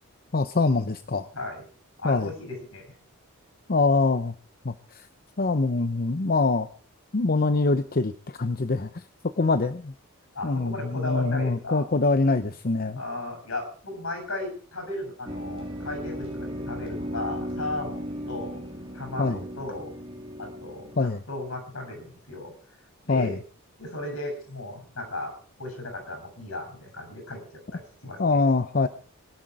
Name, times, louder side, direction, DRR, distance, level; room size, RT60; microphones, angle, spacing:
voice 1, 0.3-1.3 2.0-2.3 3.7-4.3 4.6-5.1 5.4-6.7 7.1-9.0 9.4-9.9 10.4-13.0 19.2-19.4 21.0-21.2 23.1-23.4 28.2-28.9, left 3 dB, 45° left, 11 dB, 0.7 m, -24 dB
voice 2, 2.0-2.9 10.3-11.9 13.0-18.6 18.9-19.9 20.4-22.5 23.0-23.4 23.8-28.2, left 2 dB, 70° left, 4 dB, 7.7 m, -36 dB
sound 1, 15.3-21.0, equal, 25° right, 2.5 m, -36 dB
21.5 x 12.0 x 4.9 m, 0.44 s
head